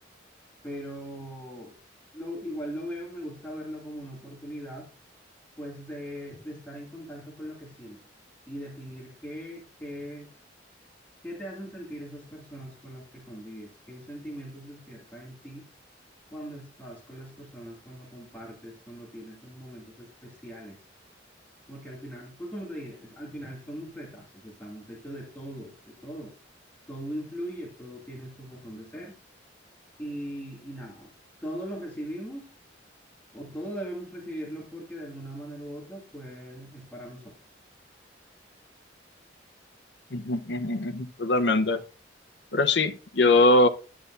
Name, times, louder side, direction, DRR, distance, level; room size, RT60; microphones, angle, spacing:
voice 1, 0.6-1.8 2.1-4.9 5.6-8.0 8.5-10.3 11.2-15.6 16.3-20.8 21.7-26.3 26.9-29.2 30.0-31.1 31.4-32.5 33.3-37.4, equal, 10° left, 2.0 m, -40 dB
voice 2, 40.1-41.8 42.5-43.7, left 2 dB, 65° left, 0.8 m, -22 dB
10.5 x 8.1 x 2.5 m
head